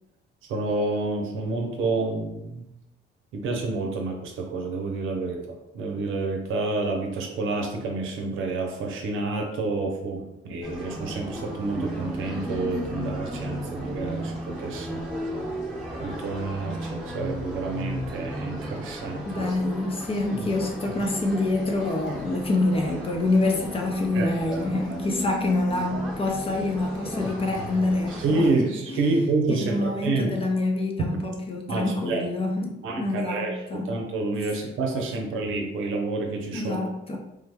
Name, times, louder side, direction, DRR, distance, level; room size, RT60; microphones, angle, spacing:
voice 1, 0.5-2.7 3.3-15.0 16.0-19.6 24.1-24.6 28.2-30.3 31.7-32.2 32.8-36.8, right 3 dB, 85° right, 2 dB, 0.7 m, -28 dB
sound 1, 10.6-28.5, equal, 5° right, 1.0 m, -35 dB
voice 2, 19.3-29.1 29.5-33.9 36.5-37.2, left 2 dB, 30° left, 2 dB, 0.6 m, -26 dB
3.4 x 2.1 x 3.3 m, 0.89 s
cardioid pair, 90°, 20 cm